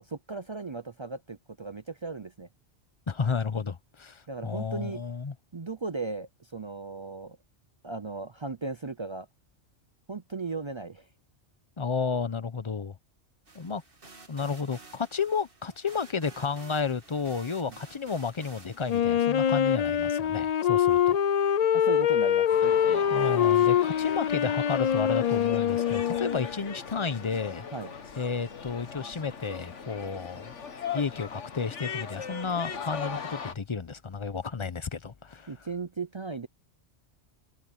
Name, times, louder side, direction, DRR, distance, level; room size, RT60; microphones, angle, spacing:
voice 1, 0.0-2.5 4.3-5.0 5.5-7.4 7.8-9.3 10.1-11.1 17.7-17.8 21.7-23.1 27.7-27.9 35.5-36.5, right 3 dB, 35° right, 0.5 m, -36 dB
voice 2, 3.1-5.3 11.8-13.0 13.5-13.8 14.3-21.2 23.1-27.7 28.2-30.5 30.9-35.5, left 5 dB, 30° left, 0.8 m, -32 dB
sound 1, 13.5-19.0, right 3 dB, 50° right, 2.6 m, -51 dB
Wind instrument woodwind instrument, 18.9-26.5, left 9 dB, 55° left, 0.4 m, -24 dB
sound 2, 22.5-33.5, left 6 dB, 85° left, 1.8 m, -39 dB
omnidirectional pair, 1.2 m